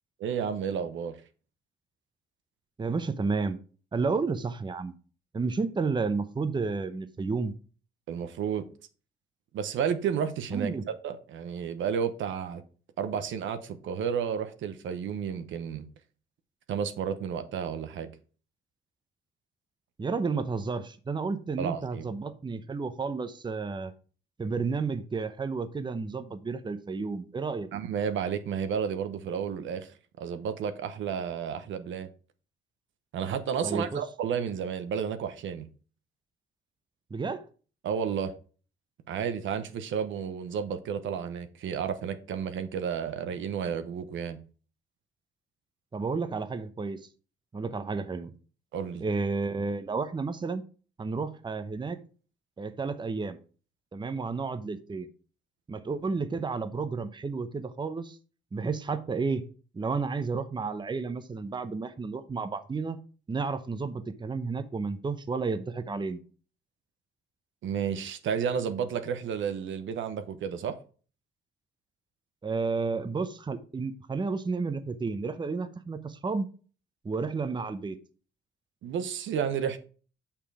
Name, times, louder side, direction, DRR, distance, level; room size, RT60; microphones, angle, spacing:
voice 1, 0.2-1.2 8.1-8.7 9.5-10.7 11.0-12.6 13.0-15.9 16.7-18.1 21.6-22.0 27.7-29.9 30.2-32.1 33.1-35.7 37.8-38.3 39.1-44.4 48.7-49.0 67.6-70.8 78.8-79.8, right 7 dB, 75° right, 1.0 m, -31 dB
voice 2, 2.8-3.6 3.9-4.9 5.3-7.5 10.5-10.8 20.0-23.9 24.4-27.7 33.6-34.0 37.1-37.5 45.9-47.0 47.5-48.3 49.0-50.6 51.0-52.0 52.6-53.4 53.9-55.1 55.7-58.2 58.5-59.4 59.7-63.0 63.3-66.2 72.4-76.5 77.0-78.0, right 4 dB, 25° right, 0.8 m, -31 dB
6.7 x 5.9 x 4.9 m
cardioid pair, 90°, 20 cm